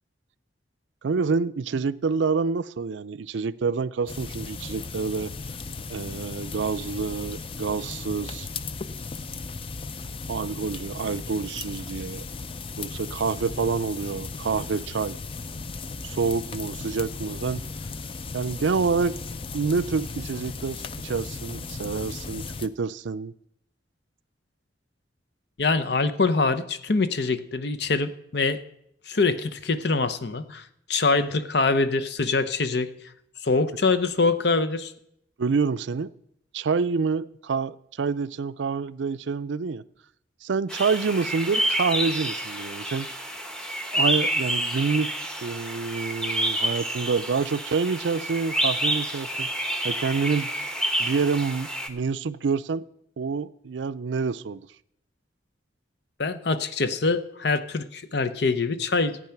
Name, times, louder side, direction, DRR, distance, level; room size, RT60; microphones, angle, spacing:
voice 1, 1.0-5.3 5.9-8.5 10.3-12.2 12.8-15.2 16.0-17.6 18.3-19.2 19.5-23.3 35.4-36.1 36.5-39.8 40.4-43.1 43.9-45.1 45.4-50.5 51.0-52.9 53.2-54.7, right 5 dB, 75° right, 15 dB, 0.5 m, -27 dB
sound 1, 4.1-22.7, left 4 dB, 30° left, 0.4 m, -36 dB
voice 2, 25.6-28.6 29.1-32.9 33.4-34.9 56.2-59.2, left 3 dB, 60° left, 11 dB, 0.8 m, -24 dB
sound 2, 40.7-51.9, right 1 dB, 5° left, 0.9 m, -28 dB
14.0 x 8.9 x 5.9 m, 0.75 s
head